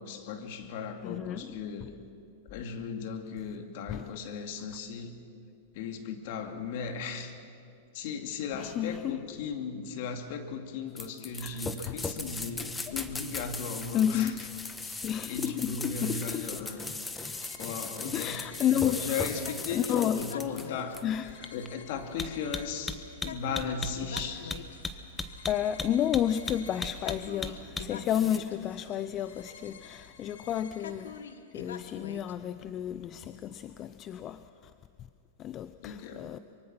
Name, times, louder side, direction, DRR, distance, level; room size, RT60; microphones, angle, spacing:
voice 1, 0.0-2.0 2.5-5.2 5.7-7.4 7.9-14.3 14.8-16.8 17.6-21.0 21.5-24.5 35.8-36.3, left 5 dB, 60° left, 2.3 m, -36 dB
voice 2, 1.0-1.5 3.9-4.1 8.5-9.2 11.4-11.6 11.9-12.0 12.6-12.7 13.9-14.4 15.0-16.6 18.1-19.3 19.7-20.3 21.0-21.5 25.5-31.2 31.5-34.7 35.4-36.4, left 10 dB, 35° left, 0.6 m, -31 dB
sound 1, 11.0-28.4, left 3 dB, 10° left, 1.3 m, -37 dB
sound 2, 16.6-32.3, left 6 dB, 85° left, 1.4 m, -47 dB
24.0 x 23.0 x 6.1 m
hypercardioid pair, 115°, 0 cm